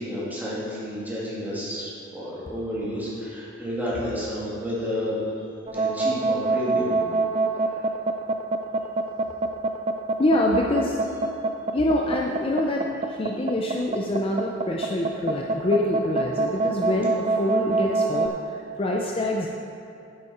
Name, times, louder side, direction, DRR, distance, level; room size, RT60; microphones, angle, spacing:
voice 1, 0.0-6.9 7.7-7.8, equal, 10° right, -8 dB, 2.6 m, -31 dB
sound 1, 5.7-18.3, right 3 dB, 30° right, 0.4 m, -25 dB
voice 2, 10.2-11.0 11.7-19.5, left 1 dB, 30° left, -1 dB, 0.6 m, -25 dB
9.8 x 8.5 x 4.4 m, 2.6 s
head